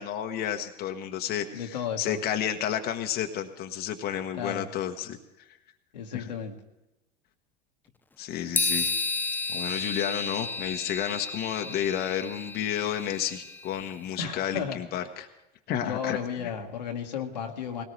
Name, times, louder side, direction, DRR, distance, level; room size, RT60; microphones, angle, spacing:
voice 1, 0.0-5.2 6.1-6.3 8.2-8.9 9.5-15.3 15.7-16.2, left 10 dB, 50° left, 5 dB, 1.2 m, -31 dB
voice 2, 1.5-2.2 4.4-4.7 5.9-6.5 14.2-14.8 15.8-17.8, left 7 dB, 85° left, 2 dB, 1.7 m, -33 dB
sound 1, 8.5-13.8, left 3 dB, 10° left, 0.4 m, -32 dB
19.5 x 18.0 x 3.3 m, 0.96 s
hypercardioid pair, 85°, 21 cm